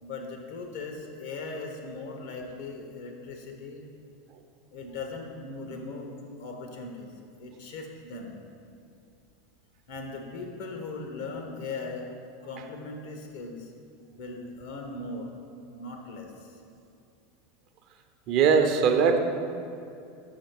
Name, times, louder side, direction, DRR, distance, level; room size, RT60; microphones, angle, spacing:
voice 1, 0.0-3.9 4.7-7.1 7.4-8.4 9.9-12.2 12.4-13.7 14.2-15.3 15.8-16.6, left 3 dB, 65° left, 2 dB, 1.2 m, -39 dB
voice 2, 18.3-19.2, right 6 dB, 50° right, 6 dB, 0.7 m, -20 dB
6.4 x 6.4 x 4.7 m, 2.6 s
hypercardioid pair, 85°, 0 cm